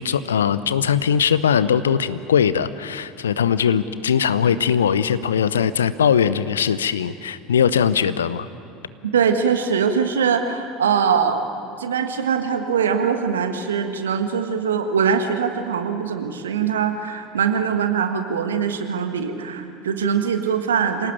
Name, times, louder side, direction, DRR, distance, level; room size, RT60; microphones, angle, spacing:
voice 1, 0.0-8.5, left 7 dB, 75° left, 15 dB, 0.7 m, -20 dB
voice 2, 9.1-11.5 11.8-21.1, right 6 dB, 75° right, 7 dB, 1.6 m, -22 dB
27.0 x 18.0 x 8.9 m, 2.6 s
figure-of-eight pair, 70°, 0 cm